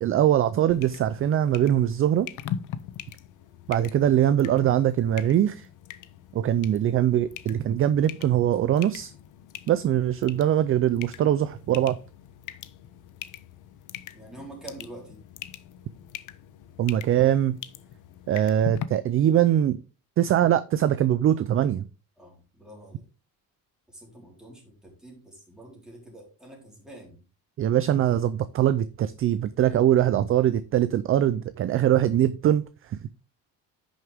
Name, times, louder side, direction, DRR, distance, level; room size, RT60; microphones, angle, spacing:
voice 1, 0.0-2.3 3.7-5.7 6.3-9.1 9.7-12.0 16.8-17.6 18.3-19.8 20.2-21.8 27.6-33.0, right 11 dB, 35° right, 14 dB, 0.4 m, -22 dB
sound 1, 0.7-18.8, left 10 dB, 55° left, 0.7 m, -41 dB
voice 2, 14.1-15.2 22.2-23.1 23.9-27.2, right 2 dB, ahead, -2 dB, 4.0 m, -46 dB
10.5 x 6.5 x 3.5 m, 0.33 s
cardioid pair, 155°, 36 cm